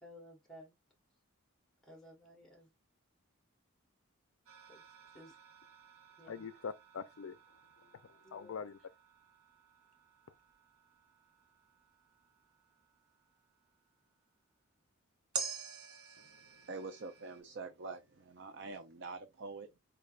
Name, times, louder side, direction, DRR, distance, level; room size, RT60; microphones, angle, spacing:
voice 1, 0.0-0.7 1.8-2.7 4.7-4.8 5.1-5.4 6.2-6.4 8.2-8.6, equal, ahead, 1.1 m, -55 dB
sound 1, 4.5-13.9 15.3-17.4, right 6 dB, 85° right, 1.2 m, -49 dB
voice 2, 6.3-7.4 7.8-8.8, left 6 dB, 70° left, 0.4 m, -44 dB
voice 3, 16.2-19.8, right 3 dB, 55° right, 0.5 m, -46 dB
4.6 x 3.3 x 2.3 m
head